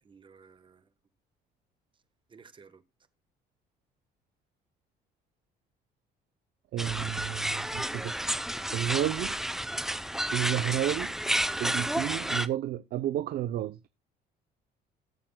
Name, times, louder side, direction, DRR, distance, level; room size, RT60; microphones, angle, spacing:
voice 1, 0.0-0.9 2.3-2.8, right 5 dB, 30° right, 1.2 m, -55 dB
voice 2, 6.7-8.3 8.7-9.3 10.3-11.1 11.6-13.8, right 12 dB, 65° right, 0.6 m, -31 dB
sound 1, 6.8-12.5, right 1 dB, ahead, 0.6 m, -31 dB
17.5 x 7.6 x 2.2 m
cardioid pair, 110°, 17 cm